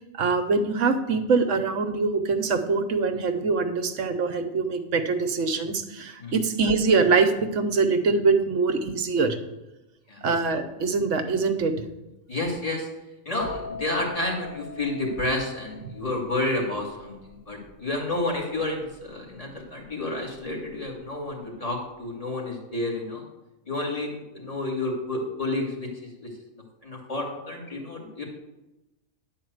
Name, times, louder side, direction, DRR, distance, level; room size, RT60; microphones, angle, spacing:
voice 1, 0.1-9.4 10.2-11.7 15.8-15.9, right 4 dB, 65° right, 8 dB, 1.1 m, -23 dB
voice 2, 12.3-12.9 13.3-23.2 23.7-26.3 26.8-28.2, left 2 dB, 25° left, -1 dB, 2.1 m, -30 dB
sound 1, 13.4-21.0 21.3-21.7, left 4 dB, 65° left, 2.7 m, -42 dB
10.5 x 4.4 x 7.9 m, 1.0 s
omnidirectional pair, 1.4 m